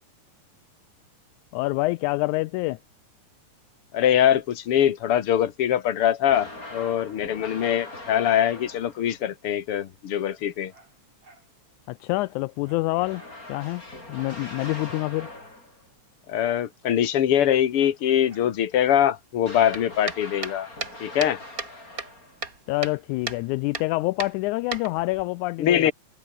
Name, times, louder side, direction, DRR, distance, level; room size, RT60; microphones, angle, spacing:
voice 1, 1.5-2.8 11.9-13.2 13.5-13.8 14.1-15.3 22.7-25.9, left 21 dB, 85° left, 1.9 m, -26 dB
voice 2, 3.9-10.7 16.3-20.7 21.0-21.4 25.6-25.9, left 10 dB, 50° left, 2.4 m, -23 dB
sound 1, 6.2-9.2 13.0-15.9 19.4-22.5, left 2 dB, 25° left, 7.4 m, -42 dB
Dog, 10.2-11.5 11.8-11.9 12.2-13.4 13.8-13.9 14.1-15.4 16.4-16.7 17.2-18.6 19.5-19.9 20.1-21.7 22.7-23.0 23.5-23.6, right 2 dB, 50° right, 9.1 m, -56 dB
sound 2, 19.7-21.7 22.0-23.0 23.3-23.4 23.7-23.9 24.2-25.2, right 4 dB, 30° right, 2.7 m, -34 dB
omnidirectional pair, 3.5 m